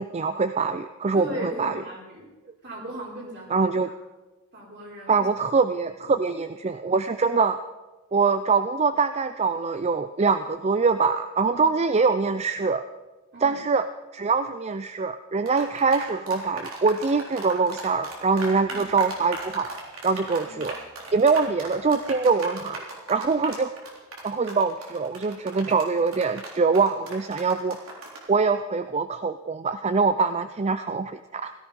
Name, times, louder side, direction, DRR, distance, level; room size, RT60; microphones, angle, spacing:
voice 1, 0.0-1.8 3.5-3.9 5.1-7.6 8.1-12.8 13.4-13.9 14.1-19.7 20.0-20.8 21.1-22.8 23.1-23.7 24.2-27.8 28.3-31.5, right 4 dB, 30° right, 10 dB, 0.5 m, -24 dB
voice 2, 1.1-2.3 2.6-3.9 4.5-5.3 6.0-6.2 11.5-11.7 13.3-13.6 18.7-18.9 20.4-20.7, equal, 55° right, -2 dB, 5.0 m, -38 dB
sound 1, 15.4-28.3, right 2 dB, 75° right, 3.7 m, -37 dB
16.5 x 14.0 x 5.3 m, 1.2 s
head